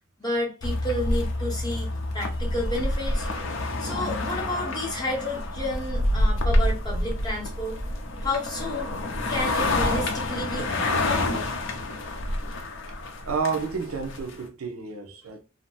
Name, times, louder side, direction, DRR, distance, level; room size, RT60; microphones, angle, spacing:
voice 1, 0.2-3.3 3.8-7.8 8.2-8.9 9.3-12.0, left 1 dB, 20° left, 0.9 m, -31 dB
sound 1, 0.6-14.4, left 1 dB, 60° left, 0.6 m, -27 dB
voice 2, 13.3-15.4, right 5 dB, 80° right, 0.6 m, -30 dB
2.7 x 2.1 x 3.1 m
head